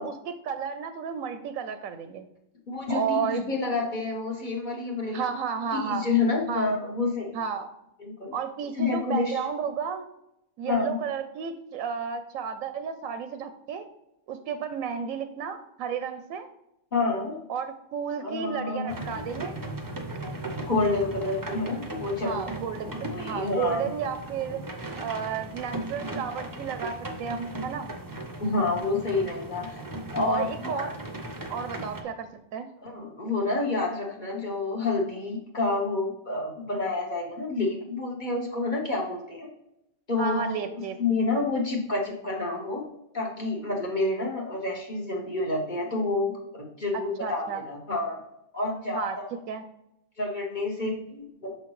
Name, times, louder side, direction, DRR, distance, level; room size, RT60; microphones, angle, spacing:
voice 1, 0.0-2.3 2.9-3.5 5.1-6.1 6.5-6.8 7.3-7.7 8.3-10.1 10.6-13.9 14.3-16.5 17.5-19.6 22.2-22.9 23.2-24.6 25.0-27.9 30.2-31.0 31.5-32.7 40.2-41.0 46.9-47.6 48.9-49.2 49.5-49.6, right 7 dB, 85° right, 9 dB, 1.0 m, -32 dB
voice 2, 2.7-5.3 5.7-7.4 8.2-8.3 8.7-9.4 10.7-11.0 16.9-17.4 18.2-18.9 20.6-22.4 22.8-23.9 28.4-29.8 30.1-30.9 32.8-39.5 40.1-40.6 41.0-42.8 43.1-48.2 48.5-49.3 50.2-51.6, left 3 dB, 40° left, 0 dB, 1.1 m, -28 dB
sound 1, 18.9-32.0, right 1 dB, 20° right, 0.5 m, -37 dB
6.6 x 5.7 x 3.1 m, 0.84 s
omnidirectional pair, 1.4 m